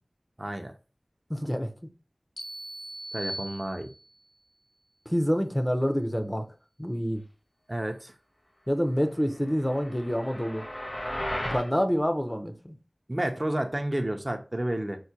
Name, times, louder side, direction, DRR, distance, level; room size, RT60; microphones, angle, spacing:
voice 1, 0.4-0.7 3.1-3.9 7.7-8.1 13.1-15.0, right 1 dB, 35° right, 0.5 m, -30 dB
voice 2, 1.3-1.7 5.1-6.5 6.8-7.2 8.7-10.6 11.4-12.8, equal, 15° left, 0.5 m, -27 dB
sound 1, 2.4-4.2, right 1 dB, 60° left, 0.7 m, -39 dB
sound 2, 9.4-11.7, equal, 80° left, 1.6 m, -35 dB
4.5 x 2.1 x 2.6 m
wide cardioid pair, 45°, 0 cm